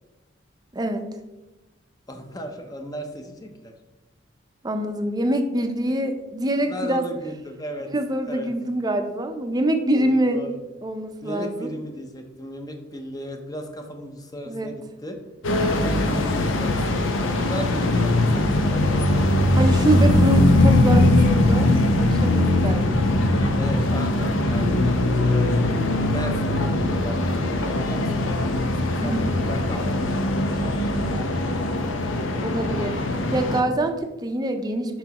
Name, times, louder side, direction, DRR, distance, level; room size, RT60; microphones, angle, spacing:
voice 1, 0.7-1.1 4.6-7.1 7.9-10.4 10.8-11.7 14.5-14.7 15.5-15.8 19.6-21.7 22.0-23.1 29.0-29.3 32.4-33.0 33.3-35.0, right 1 dB, 20° right, 6 dB, 0.5 m, -25 dB
voice 2, 2.1-3.8 6.7-7.9 8.2-8.5 9.9-10.6 11.2-15.2 15.7-20.1 23.6-24.8 25.2-31.6, equal, 20° left, 5 dB, 0.7 m, -36 dB
sound 1, 15.4-33.6, left 1 dB, 90° left, 0.7 m, -21 dB
6.0 x 5.6 x 2.9 m, 1.0 s
head